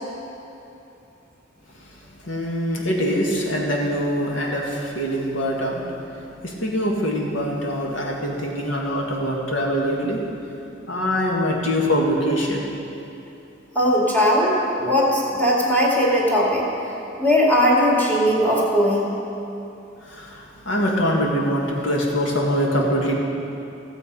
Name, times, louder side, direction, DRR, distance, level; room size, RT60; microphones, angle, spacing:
voice 1, 1.7-5.8 6.1-10.2 10.9-12.7 14.2-14.3 20.0-23.1, equal, 70° left, -1 dB, 1.9 m, -24 dB
voice 2, 13.7-16.7 17.2-19.0, equal, 10° left, -5 dB, 2.5 m, -19 dB
16.0 x 7.3 x 5.5 m, 2.8 s
head